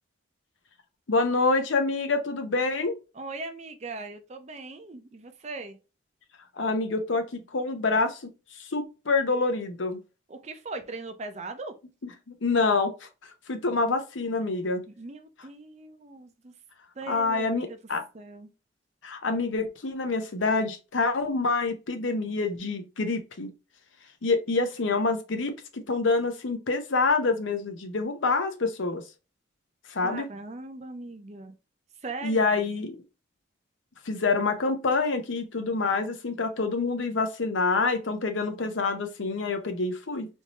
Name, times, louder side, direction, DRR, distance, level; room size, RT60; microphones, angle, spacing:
voice 1, 1.1-2.9 6.6-8.2 8.6-10.0 12.3-13.1 13.5-14.8 17.1-18.0 19.0-23.5 24.2-29.0 29.9-30.3 32.2-33.0 34.1-40.3, left 3 dB, 75° left, 0.7 m, -26 dB
voice 2, 3.1-5.8 10.3-11.8 15.0-16.5 17.0-17.8 18.1-18.5 30.0-31.5 32.0-32.5, right 3 dB, 35° right, 0.5 m, -39 dB
3.5 x 2.7 x 2.9 m
head